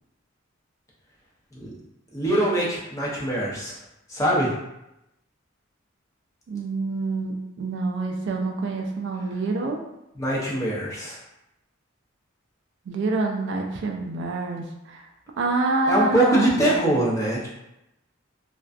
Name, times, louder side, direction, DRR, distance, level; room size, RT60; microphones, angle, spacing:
voice 1, 2.1-3.8 4.1-4.5 10.2-11.2 15.9-17.5, right 1 dB, 15° left, -6 dB, 0.6 m, -23 dB
voice 2, 6.5-9.8 12.9-15.0 15.4-16.6, right 3 dB, 60° right, 2 dB, 0.3 m, -27 dB
2.4 x 2.2 x 2.3 m, 0.88 s
head